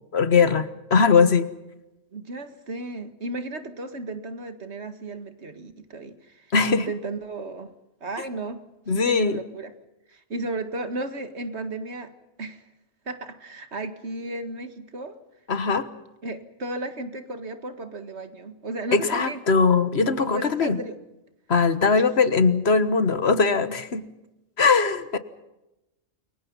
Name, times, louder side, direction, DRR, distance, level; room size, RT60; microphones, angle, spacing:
voice 1, 0.1-1.5 6.5-6.8 8.9-9.4 15.5-15.9 18.9-20.8 21.5-24.1 24.6-25.2, left 5 dB, 70° left, 12 dB, 1.7 m, -20 dB
voice 2, 2.1-7.7 8.0-8.6 8.9-9.7 10.1-12.1 12.4-12.7 13.1-15.2 16.2-19.4 20.2-21.0 21.8-22.1, right 2 dB, 80° right, 9 dB, 2.2 m, -34 dB
28.5 x 23.5 x 5.6 m, 0.94 s
omnidirectional pair, 1.1 m